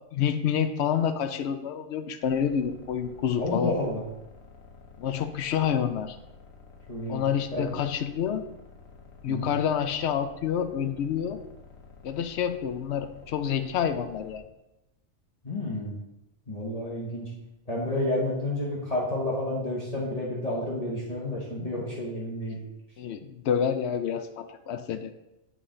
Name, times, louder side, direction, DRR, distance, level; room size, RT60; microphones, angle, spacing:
voice 1, 0.1-3.7 5.0-6.2 7.1-8.4 9.2-11.4 12.0-14.4 23.0-25.1, left 8 dB, 65° left, 10 dB, 0.7 m, -28 dB
sound 1, 2.2-14.4, left 4 dB, 90° left, 1.4 m, -51 dB
voice 2, 3.4-4.0 6.9-7.2 7.5-7.7 9.3-9.5 15.4-16.0 16.5-17.3 17.7-22.6, left 1 dB, 30° left, -6 dB, 1.2 m, -30 dB
9.1 x 4.0 x 3.7 m, 0.91 s
omnidirectional pair, 1.4 m